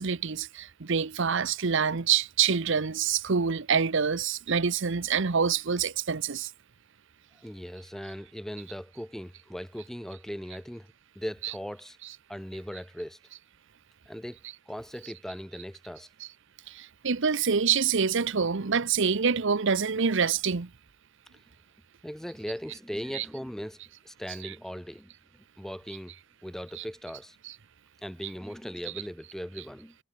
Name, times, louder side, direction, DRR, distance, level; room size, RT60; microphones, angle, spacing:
voice 1, 0.0-6.5 11.4-11.6 12.0-12.2 15.0-15.1 16.2-16.3 16.7-20.7 23.1-23.3 24.3-24.6 26.8-26.9 27.4-27.6 28.2-28.3 28.9-29.0, right 6 dB, 65° right, 0.9 m, -26 dB
voice 2, 7.4-10.9 11.1-12.0 12.3-13.2 14.1-14.4 14.7-16.1 22.0-23.8 24.0-25.1 25.6-26.1 26.4-27.4 28.0-30.0, equal, ahead, 0.8 m, -39 dB
head